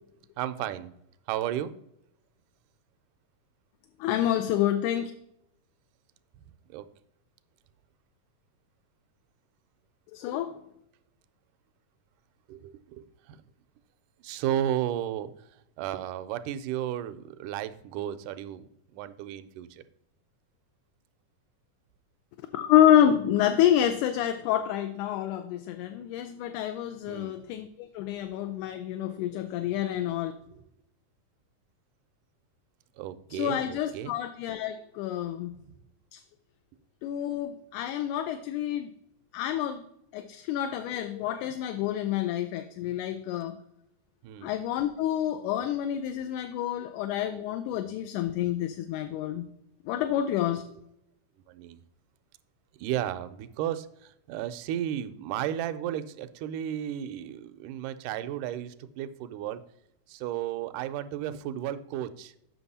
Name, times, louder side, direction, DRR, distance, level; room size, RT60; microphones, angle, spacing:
voice 1, 0.4-0.9 1.3-1.7 6.7-6.9 12.5-13.4 14.2-15.3 15.8-19.8 27.1-27.3 30.5-30.6 33.0-34.1 44.2-44.5 51.5-51.8 52.8-59.6 60.1-62.3, right 11 dB, 80° right, 11 dB, 2.1 m, -33 dB
voice 2, 4.0-5.1 10.1-10.6 22.5-30.3 33.3-35.6 36.1-36.2 37.0-38.9 39.3-39.8 40.1-43.6 44.4-49.5 49.9-50.6, left 11 dB, 80° left, 9 dB, 2.0 m, -28 dB
7.9 x 5.9 x 4.1 m, 0.78 s
omnidirectional pair, 3.7 m